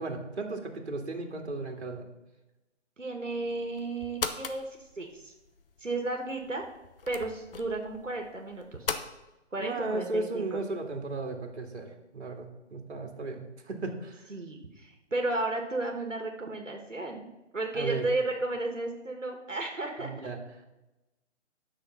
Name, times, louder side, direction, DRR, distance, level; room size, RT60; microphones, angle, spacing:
voice 1, 0.0-2.1 9.6-14.3 17.7-18.1 20.0-20.4, right 3 dB, 65° right, 3 dB, 2.1 m, -35 dB
voice 2, 3.0-5.3 5.8-6.7 7.1-8.6 9.5-10.6 14.3-17.3 17.5-20.1, right 2 dB, 90° right, 2 dB, 1.8 m, -33 dB
sound 1, 3.4-9.1, left 5 dB, 50° left, 1.0 m, -40 dB
10.5 x 6.6 x 5.7 m, 0.99 s
figure-of-eight pair, 140°, 36 cm